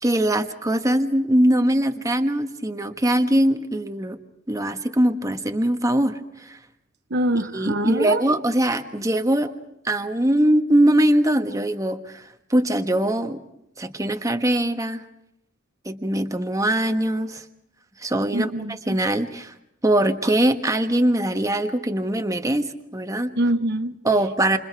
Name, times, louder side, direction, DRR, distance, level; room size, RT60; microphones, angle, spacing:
voice 1, 0.0-4.2 4.5-6.6 7.5-9.5 9.8-12.2 12.5-13.4 13.8-15.0 15.8-17.4 18.0-19.5 19.8-22.6 22.9-23.3 24.0-24.6, right 1 dB, 15° right, 6 dB, 1.5 m, -22 dB
voice 2, 7.1-8.2 18.3-19.0 23.4-23.9, right 1 dB, 55° right, 8 dB, 0.9 m, -24 dB
28.0 x 28.0 x 4.7 m, 0.80 s
head